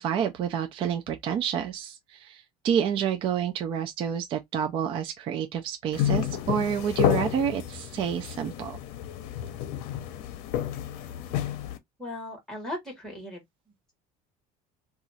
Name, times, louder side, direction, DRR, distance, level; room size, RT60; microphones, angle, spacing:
voice 1, 0.0-8.8, right 8 dB, 35° right, 0.4 m, -29 dB
sound 1, 5.9-11.8, left 11 dB, 65° left, 0.6 m, -30 dB
voice 2, 12.0-13.7, left 1 dB, 5° left, 1.6 m, -38 dB
2.9 x 2.4 x 3.9 m
cardioid pair, 180°, 17 cm